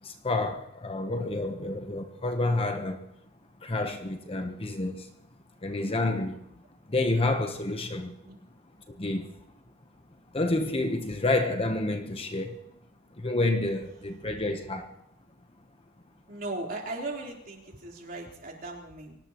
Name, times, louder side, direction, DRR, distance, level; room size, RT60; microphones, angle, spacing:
voice 1, 0.0-3.1 3.6-5.1 5.6-6.4 6.9-8.2 8.9-9.3 10.3-12.6 13.2-14.9, left 2 dB, 25° left, 1.0 m, -29 dB
voice 2, 16.3-19.2, right 2 dB, 40° right, 3.8 m, -37 dB
24.5 x 18.0 x 3.0 m
head